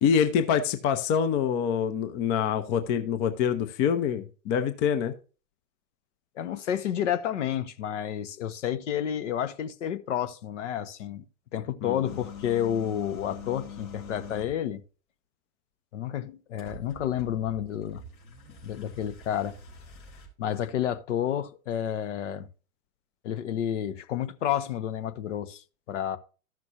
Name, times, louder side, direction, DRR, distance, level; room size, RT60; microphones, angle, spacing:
voice 1, 0.0-5.1 11.8-12.0, left 7 dB, 25° left, 0.6 m, -25 dB
voice 2, 6.4-11.2 11.5-14.8 15.9-18.0 18.6-19.5 20.4-22.5 23.2-26.2, left 10 dB, 55° left, 0.8 m, -30 dB
sound 1, 12.0-14.6 16.6-20.3, left 4 dB, 75° left, 3.7 m, -44 dB
14.0 x 6.0 x 2.8 m
figure-of-eight pair, 100°, 45 cm